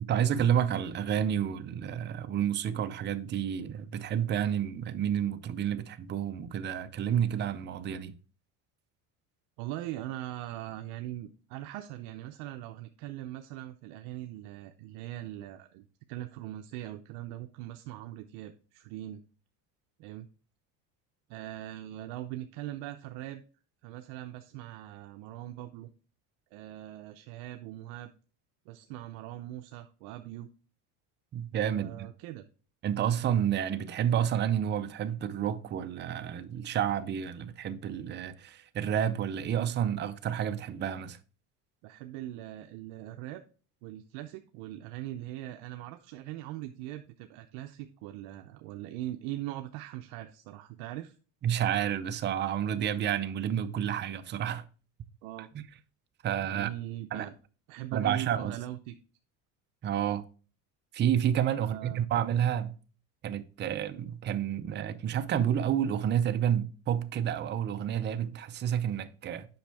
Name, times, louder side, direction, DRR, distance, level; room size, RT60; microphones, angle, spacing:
voice 1, 0.0-8.1 31.3-32.1 32.8-41.2 51.4-54.6 55.5-55.7 56.2-56.7 57.1-57.3 57.9-58.6 59.8-60.2 60.9-62.8 63.2-69.5, right 9 dB, 25° right, 0.5 m, -30 dB
voice 2, 9.6-19.2 20.0-20.3 21.3-23.4 23.8-25.9 26.5-28.1 28.7-30.5 31.7-32.4 41.8-43.4 43.8-51.2 55.2-55.5 56.4-57.3 57.7-59.0 61.5-62.1, right 14 dB, 75° right, 0.7 m, -41 dB
7.8 x 5.6 x 3.4 m
cardioid pair, 135°, 40 cm